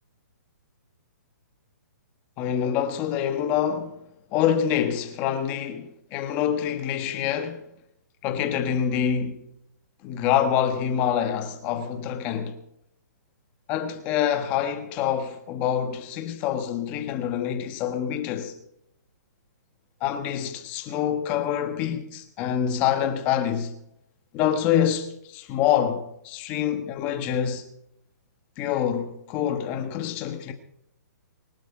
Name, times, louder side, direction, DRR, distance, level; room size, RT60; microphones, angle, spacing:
voice 1, 2.4-4.0 4.3-7.6 8.2-9.4 10.0-12.6 13.7-18.5 20.0-23.8 24.3-27.7 28.6-30.5, left 9 dB, 15° left, 1.2 m, -26 dB
24.5 x 8.5 x 4.8 m
hypercardioid pair, 180°, 9 cm